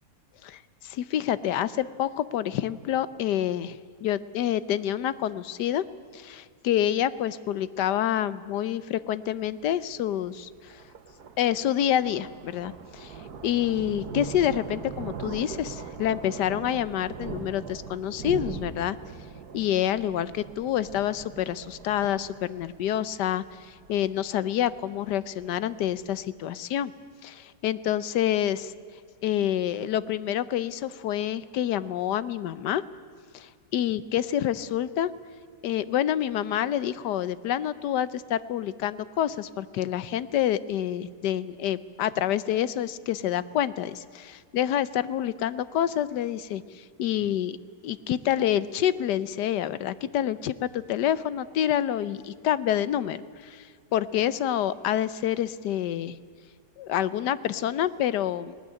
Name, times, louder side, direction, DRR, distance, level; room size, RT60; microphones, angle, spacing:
voice 1, 0.4-5.8 6.1-10.8 11.4-19.0 19.5-26.9 27.2-28.7 29.2-32.8 33.3-35.1 35.6-47.6 47.8-56.2 56.8-58.5, left 11 dB, 90° left, 17 dB, 1.4 m, -27 dB
Thunder, 9.3-26.2, right 6 dB, 70° right, 1.7 m, -41 dB
19.5 x 19.0 x 9.7 m, 2.1 s
omnidirectional pair, 1.7 m